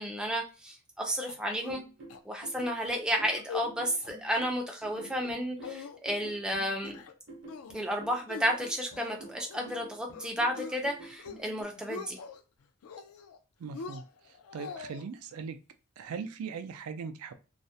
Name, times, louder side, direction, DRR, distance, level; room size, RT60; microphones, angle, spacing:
voice 1, 0.0-1.8 2.3-7.0 7.7-12.2, equal, 5° right, 1 dB, 0.3 m, -32 dB
sound 1, 1.3-1.8 2.1-2.2 2.6-2.8 3.2-3.7 4.0-4.4 4.9-5.3 5.6-6.3 6.7-7.1 7.5-7.9 8.3-9.8 10.1-10.8 11.1-11.5 11.8-12.4 12.8-13.4 13.7-15.0, left 6 dB, 75° left, 0.3 m, -43 dB
sound 2, 1.7-11.6, right 3 dB, 55° right, 0.7 m, -50 dB
voice 2, 13.6-14.0 14.5-15.6 16.0-17.3, right 5 dB, 85° right, 9 dB, 0.4 m, -39 dB
2.3 x 2.0 x 2.6 m, 0.31 s
head